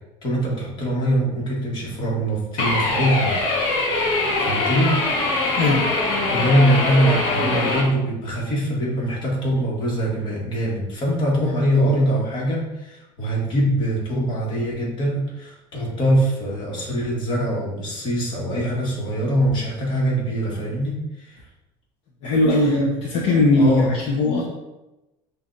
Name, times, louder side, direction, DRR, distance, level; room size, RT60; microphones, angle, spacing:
voice 1, 0.2-3.4 3.7-5.0 6.3-21.4 22.5-22.7 23.5-23.9, equal, 40° left, -4 dB, 1.5 m, -23 dB
sound 1, 2.6-7.8, left 2 dB, 85° left, 1.2 m, -22 dB
voice 2, 5.6-5.9 22.2-24.4, left 2 dB, 55° left, -3 dB, 0.8 m, -19 dB
7.0 x 2.7 x 2.6 m, 0.98 s
cardioid pair, 150°, 12 cm